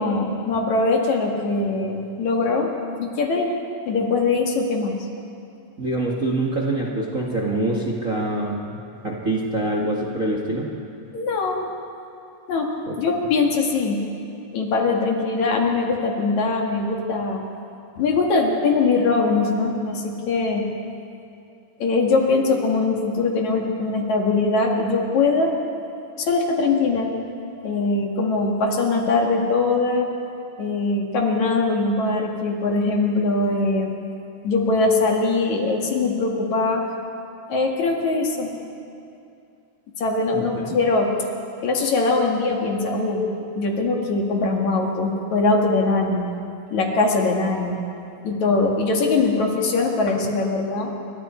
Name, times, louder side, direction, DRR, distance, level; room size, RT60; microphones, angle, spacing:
voice 1, 0.0-2.7 3.0-3.5 3.9-5.0 11.1-11.7 12.5-14.0 14.5-17.4 18.0-20.7 21.8-25.5 26.2-27.1 27.6-30.1 30.6-33.9 34.4-36.8 37.5-38.5 40.0-41.1 41.6-43.3 43.6-46.3 46.7-47.8 48.2-50.9, left 3 dB, 60° left, 1 dB, 3.1 m, -21 dB
voice 2, 5.8-10.7 12.9-13.0 40.3-40.8, right 2 dB, 30° right, -2 dB, 1.6 m, -25 dB
28.5 x 24.0 x 4.4 m, 2.6 s
omnidirectional pair, 3.8 m